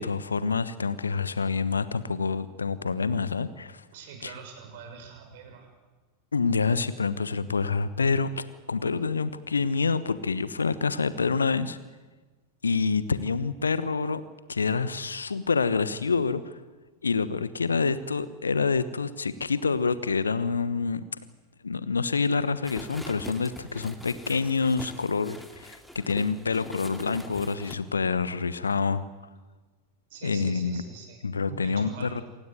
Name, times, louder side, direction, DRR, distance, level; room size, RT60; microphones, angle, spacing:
voice 1, 0.0-3.8 4.2-4.3 6.3-8.3 8.7-11.8 12.6-14.2 14.5-16.6 17.0-21.0 21.6-29.0 30.2-30.8 31.2-32.2, left 4 dB, 75° left, 15 dB, 1.2 m, -27 dB
voice 2, 3.9-5.7 30.1-31.2 31.5-32.2, right 6 dB, 55° right, 4 dB, 6.4 m, -43 dB
sound 1, 22.6-27.8, left 1 dB, 5° left, 2.3 m, -43 dB
27.0 x 16.0 x 9.4 m, 1.3 s
figure-of-eight pair, 90°, 0 cm